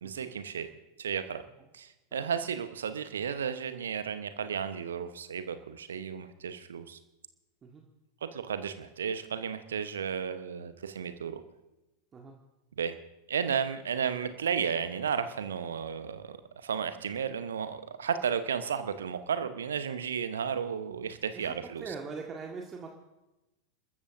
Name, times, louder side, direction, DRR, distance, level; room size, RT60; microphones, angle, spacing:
voice 1, 0.0-0.7 1.0-1.4 1.7-7.0 8.2-11.4 12.8-13.0 13.3-21.9, right 7 dB, 65° right, 10 dB, 1.0 m, -33 dB
voice 2, 21.3-22.9, right 4 dB, 20° right, 1 dB, 1.7 m, -42 dB
29.5 x 14.0 x 2.7 m, 0.99 s
figure-of-eight pair, 90°, 0 cm